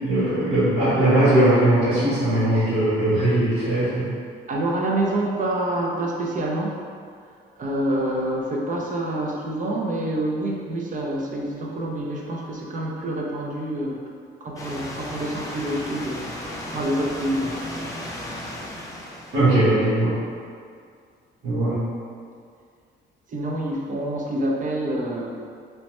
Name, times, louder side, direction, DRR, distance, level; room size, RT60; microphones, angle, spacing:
voice 1, 0.0-4.1 19.3-20.2 21.4-21.8, right 1 dB, 85° right, -16 dB, 1.2 m, -19 dB
voice 2, 4.5-6.8 7.6-14.0 14.4-16.4 16.7-17.9 23.3-25.4, right 1 dB, 40° right, -2 dB, 0.5 m, -27 dB
sound 1, 14.6-19.5, left 1 dB, 15° left, 0.4 m, -35 dB
3.1 x 2.0 x 3.0 m, 2.2 s
cardioid pair, 90°, 20 cm